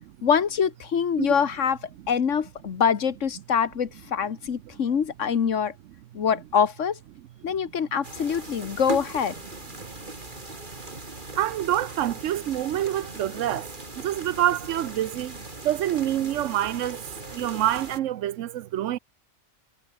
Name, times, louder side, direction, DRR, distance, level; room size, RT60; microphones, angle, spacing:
voice 1, 0.2-1.8 2.1-5.7 6.1-7.0 7.4-9.3, left 7 dB, 75° left, 1.6 m, -24 dB
sound 1, 8.0-18.0, right 2 dB, 40° right, 3.3 m, -39 dB
voice 2, 11.4-13.7 14.0-19.0, right 12 dB, 85° right, 1.0 m, -27 dB
omnidirectional pair, 1.3 m